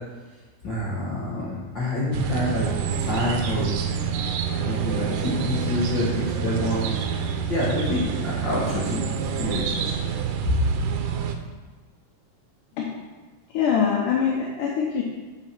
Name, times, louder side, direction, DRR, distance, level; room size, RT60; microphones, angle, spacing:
voice 1, 0.6-2.6 3.0-4.2 4.5-7.2 7.5-9.0 9.4-9.8, left 1 dB, 45° left, -9 dB, 1.7 m, -27 dB
sound 1, 2.1-11.4, right 7 dB, 80° right, 2.1 m, -27 dB
voice 2, 13.5-15.0, left 7 dB, 75° left, -2 dB, 2.3 m, -23 dB
7.4 x 4.9 x 6.1 m, 1.3 s
omnidirectional pair, 4.0 m